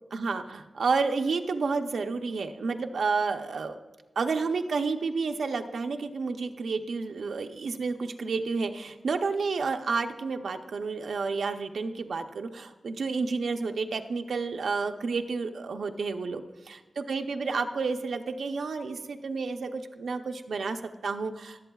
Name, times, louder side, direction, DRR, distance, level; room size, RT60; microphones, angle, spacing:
voice 1, 0.1-3.8 4.2-21.6, right 4 dB, 75° right, 5 dB, 0.6 m, -30 dB
20.0 x 7.9 x 2.3 m, 1.2 s
wide cardioid pair, 145°, 0 cm